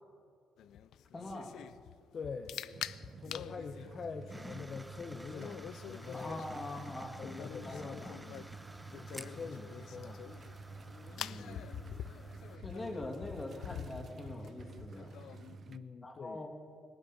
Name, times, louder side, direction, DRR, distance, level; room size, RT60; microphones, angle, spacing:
sound 1, 0.6-15.6, left 10 dB, 75° left, 0.4 m, -47 dB
voice 1, 1.1-1.6 6.1-7.2 7.6-7.8 11.2-11.6 12.6-15.1 16.0-16.5, left 2 dB, 25° left, 3 dB, 2.5 m, -43 dB
voice 2, 2.1-2.6 3.1-6.4 7.2-8.4 8.8-10.2 15.7-16.5, left 5 dB, 50° left, 6 dB, 0.8 m, -44 dB
sound 2, 2.7-15.8, right 3 dB, 50° right, 0.6 m, -50 dB
sound 3, 4.3-12.6, right 1 dB, 10° right, 0.6 m, -52 dB
19.0 x 8.8 x 8.0 m, 2.4 s
cardioid pair, 90°, 0 cm